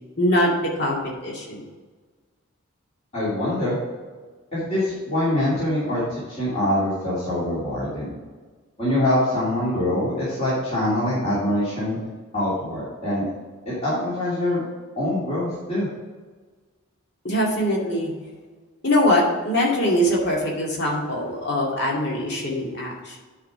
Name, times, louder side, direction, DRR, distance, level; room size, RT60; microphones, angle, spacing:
voice 1, 0.2-1.6 17.2-18.1 18.8-23.2, left 1 dB, 50° left, -2 dB, 2.3 m, -22 dB
voice 2, 3.1-3.8 4.5-6.0 6.3-8.2 8.8-12.0 12.3-13.2 13.7-14.6 15.0-15.9, left 1 dB, 30° left, -11 dB, 2.8 m, -24 dB
10.0 x 5.0 x 4.9 m, 1.4 s
head